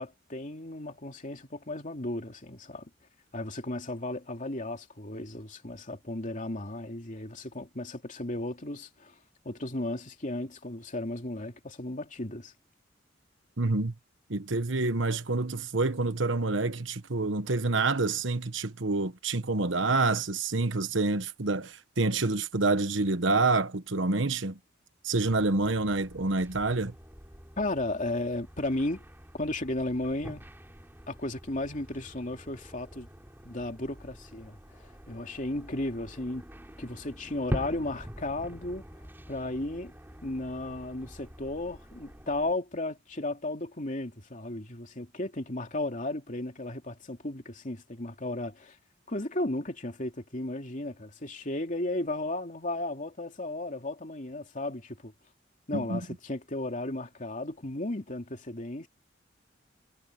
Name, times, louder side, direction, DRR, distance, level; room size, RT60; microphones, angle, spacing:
voice 1, 0.0-2.9 3.3-9.1 9.4-12.5 27.6-29.0 29.3-30.4 31.1-33.1 33.4-36.4 36.8-38.8 39.3-39.9 40.2-48.8 49.1-55.1 55.7-58.9, left 2 dB, 40° left, 2.8 m, -34 dB
voice 2, 13.6-13.9 14.3-24.6 25.0-26.9 55.7-56.0, right 3 dB, 70° right, 1.3 m, -27 dB
sound 1, 25.2-42.6, equal, 10° right, 3.9 m, -44 dB
head